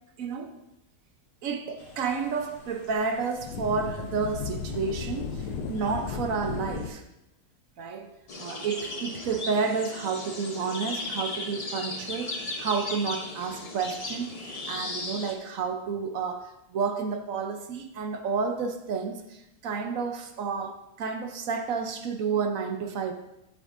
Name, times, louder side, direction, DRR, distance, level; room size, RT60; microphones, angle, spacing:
voice 1, 0.2-0.6 1.4-7.0 7.8-23.1, right 5 dB, 65° right, 6 dB, 1.1 m, -31 dB
sound 1, 1.8-6.9, left 5 dB, 90° left, 1.4 m, -36 dB
sound 2, 8.3-15.3, left 2 dB, 35° left, 0.6 m, -36 dB
11.5 x 7.3 x 2.6 m, 0.88 s
omnidirectional pair, 1.7 m